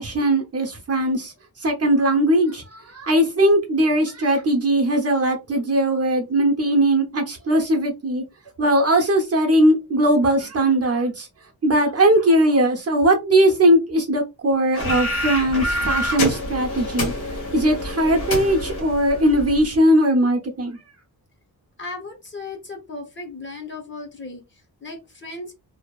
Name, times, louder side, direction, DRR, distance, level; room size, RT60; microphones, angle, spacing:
voice 1, 0.0-1.3 1.6-8.2 8.6-11.3 11.6-17.1 17.5-20.8, right 1 dB, 40° right, 0.6 m, -19 dB
sound 1, 14.8-19.7, left 1 dB, 65° left, 1.5 m, -27 dB
voice 2, 21.8-25.5, left 3 dB, 30° left, 0.7 m, -36 dB
2.6 x 2.2 x 2.3 m
wide cardioid pair, 130°, 39 cm